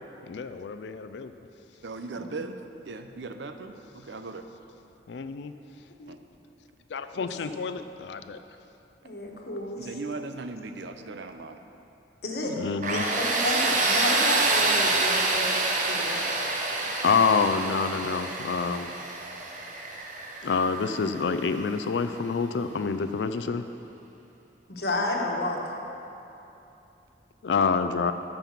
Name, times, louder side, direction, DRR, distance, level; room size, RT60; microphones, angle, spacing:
voice 1, 0.2-1.3 5.1-5.5 6.9-8.4 12.4-13.1 17.0-18.9 20.4-23.6 27.4-28.1, left 5 dB, 80° left, 10 dB, 0.4 m, -27 dB
voice 2, 1.8-2.5 2.9-4.4 6.1-6.2 9.8-11.6 25.0-25.1, right 3 dB, 90° right, 7 dB, 0.6 m, -38 dB
voice 3, 9.0-10.0 12.2-12.6 12.9-15.6 15.9-16.2 24.7-25.6, left 2 dB, 65° left, 0 dB, 1.3 m, -31 dB
Tools, 12.8-21.6, right 3 dB, 45° right, 0.9 m, -27 dB
13.0 x 5.4 x 5.8 m, 2.9 s
head